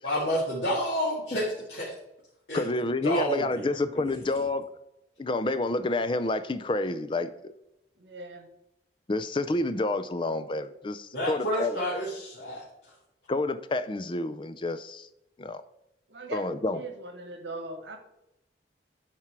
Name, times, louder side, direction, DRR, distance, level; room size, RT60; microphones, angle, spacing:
voice 1, 0.0-1.9 2.5-2.6 3.0-4.1 11.1-12.6, equal, 80° left, -7 dB, 2.3 m, -30 dB
voice 2, 2.5-4.7 5.2-7.5 9.1-11.8 13.3-15.1 15.4-15.6 16.3-16.8, left 2 dB, 30° left, 12 dB, 0.4 m, -29 dB
voice 3, 8.0-8.5 16.1-18.0, right 2 dB, 80° right, 6 dB, 1.4 m, -40 dB
9.7 x 4.4 x 4.7 m, 0.87 s
head